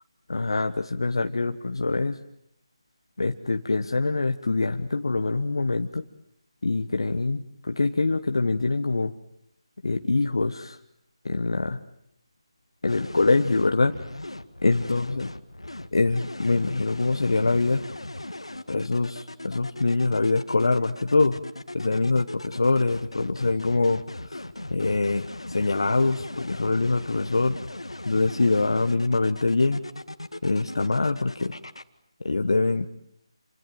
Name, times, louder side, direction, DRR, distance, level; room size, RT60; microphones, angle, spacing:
voice 1, 0.3-2.2 3.2-6.0 6.6-9.1 9.8-10.8 11.2-11.8 12.8-14.0 14.6-15.3 15.9-17.8 18.7-21.4 21.7-24.4 24.7-27.6 28.0-29.8 30.4-31.6 32.2-32.9, left 3 dB, 60° left, 7 dB, 1.3 m, -24 dB
sound 1, 12.9-31.8, left 1 dB, 75° left, 1.9 m, -39 dB
28.5 x 25.5 x 7.8 m, 0.77 s
figure-of-eight pair, 155°, 3 cm